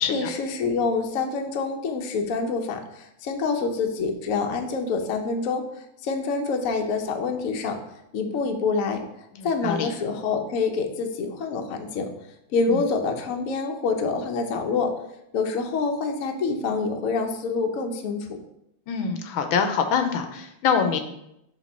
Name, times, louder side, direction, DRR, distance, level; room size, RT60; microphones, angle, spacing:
voice 1, 0.1-7.8 8.1-9.0 9.4-12.1 12.5-14.9 15.3-18.4, left 4 dB, 60° left, 4 dB, 0.8 m, -26 dB
voice 2, 18.9-21.0, left 6 dB, 80° left, 6 dB, 1.5 m, -24 dB
5.1 x 3.6 x 5.4 m, 0.80 s
omnidirectional pair, 2.2 m